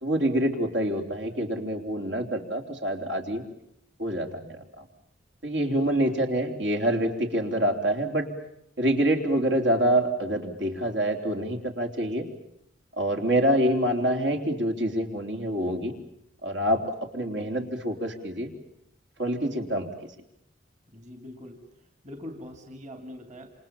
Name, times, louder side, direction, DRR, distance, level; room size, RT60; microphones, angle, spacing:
voice 1, 0.0-3.5 4.0-4.9 5.4-8.3 8.8-12.3 13.0-15.9 16.4-16.8 17.1-18.5 19.2-20.1, right 1 dB, 70° right, 3 dB, 3.9 m, -26 dB
voice 2, 20.9-21.7 22.0-23.5, left 1 dB, 40° right, 6 dB, 2.6 m, -42 dB
28.0 x 27.5 x 7.3 m, 0.78 s
head